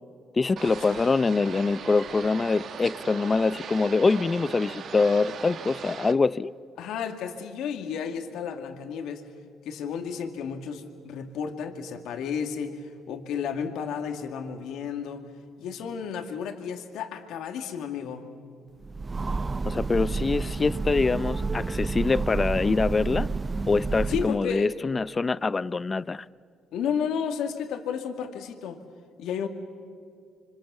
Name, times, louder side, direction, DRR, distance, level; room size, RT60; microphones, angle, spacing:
voice 1, 0.4-6.5 19.7-23.3 23.7-26.2, left 4 dB, 30° left, 0.6 m, -24 dB
sound 1, 0.6-6.1, right 7 dB, 60° right, 1.2 m, -39 dB
voice 2, 6.8-9.2 9.7-15.3 15.6-18.3 24.1-24.7 26.7-28.8 29.2-29.5, left 7 dB, 80° left, 2.2 m, -32 dB
Train, 18.8-24.6, right 4 dB, 30° right, 0.6 m, -30 dB
26.5 x 25.5 x 7.1 m
supercardioid pair, 70°, 0 cm